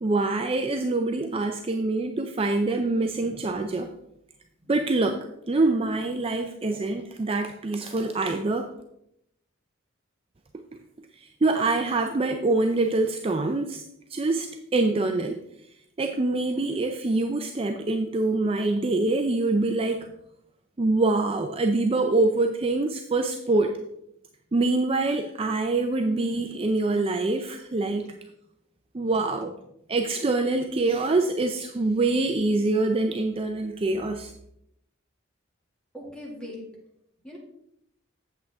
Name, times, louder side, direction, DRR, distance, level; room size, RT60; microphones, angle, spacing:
voice 1, 0.0-3.9 4.7-8.7 11.2-13.8 14.1-15.4 16.0-20.1 20.8-23.7 24.5-28.1 28.9-29.5 29.9-34.3, right 2 dB, 30° right, 5 dB, 0.5 m, -25 dB
voice 2, 3.1-3.6 4.6-4.7 35.9-36.7 37.2-37.4, left 1 dB, 5° left, -3 dB, 2.3 m, -41 dB
8.2 x 7.7 x 3.6 m, 0.78 s
head